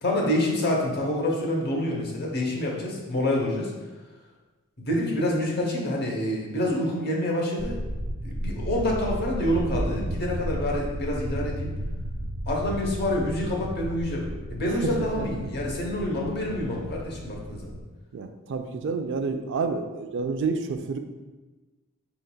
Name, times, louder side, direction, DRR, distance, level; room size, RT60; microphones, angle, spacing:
voice 1, 0.0-3.7 4.8-7.8 8.2-11.7 12.5-17.8, left 1 dB, 50° left, -1 dB, 0.9 m, -27 dB
sound 1, 7.6-17.8, equal, 85° right, 0.9 m, -33 dB
voice 2, 14.8-15.3 18.1-21.0, right 4 dB, 60° right, 7 dB, 0.4 m, -29 dB
5.1 x 3.9 x 2.2 m, 1.2 s
head